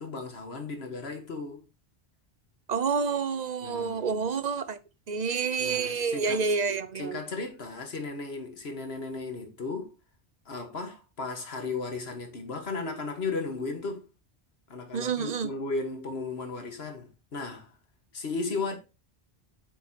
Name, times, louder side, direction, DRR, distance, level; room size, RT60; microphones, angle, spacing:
voice 1, 0.0-1.6 3.6-4.2 5.6-6.5 7.0-9.9 10.5-14.0 14.7-17.7 18.1-18.7, left 3 dB, 85° left, 1.8 m, -35 dB
voice 2, 2.7-4.8 5.1-7.2 14.9-15.5, right 5 dB, 50° right, 0.8 m, -28 dB
8.4 x 5.7 x 2.9 m
omnidirectional pair, 1.0 m